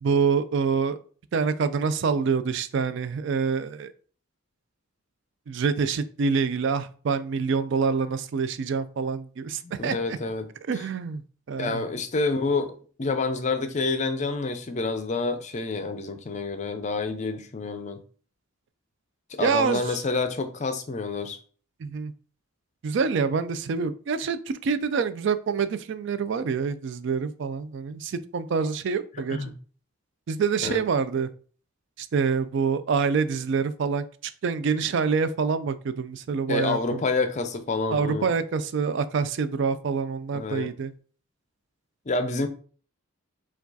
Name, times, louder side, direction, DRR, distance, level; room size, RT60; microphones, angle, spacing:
voice 1, 0.0-1.0 1.3-3.9 5.5-10.2 10.7-11.2 11.5-11.8 19.4-20.0 21.8-22.1 22.8-29.4 30.3-31.3 32.0-34.1 34.4-37.0 37.9-40.9, right 5 dB, 60° right, 0.3 m, -26 dB
voice 2, 9.6-10.5 11.6-12.7 13.0-18.0 19.3-21.4 29.3-29.5 30.6-30.8 36.5-38.3 40.3-40.7 42.1-42.5, left 3 dB, 35° left, 0.5 m, -28 dB
4.6 x 2.3 x 3.9 m
head